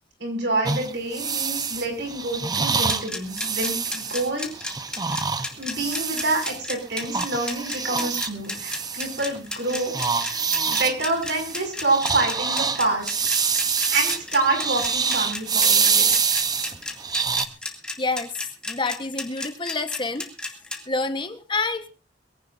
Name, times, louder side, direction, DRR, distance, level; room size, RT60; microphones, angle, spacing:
voice 1, 0.2-4.8 5.6-13.1 13.9-16.1, right 2 dB, 75° right, 2 dB, 6.1 m, -27 dB
sound 1, 0.7-6.6 7.0-9.4 9.7-17.5, right 5 dB, 20° right, 0.8 m, -25 dB
sound 2, 2.9-20.8, left 2 dB, 5° left, 2.4 m, -32 dB
voice 2, 18.0-18.3 18.7-20.2 20.9-21.9, left 3 dB, 30° left, 9 dB, 1.2 m, -27 dB
23.0 x 17.0 x 2.6 m, 0.31 s
head